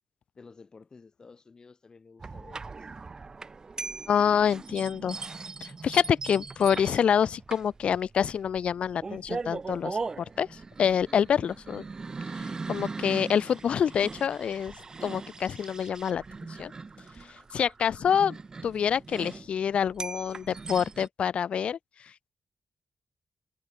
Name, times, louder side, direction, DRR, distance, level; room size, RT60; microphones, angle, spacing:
voice 1, 0.4-3.0, left 4 dB, 40° left, 2.3 m, -52 dB
sound 1, 2.2-21.1, right 4 dB, 35° right, 1.2 m, -40 dB
voice 2, 4.1-5.2 5.6-11.8 12.3-14.7 15.0-16.2 16.5-16.7 17.2-22.3, left 8 dB, 65° left, 0.9 m, -27 dB
cardioid pair, 95°, 2 cm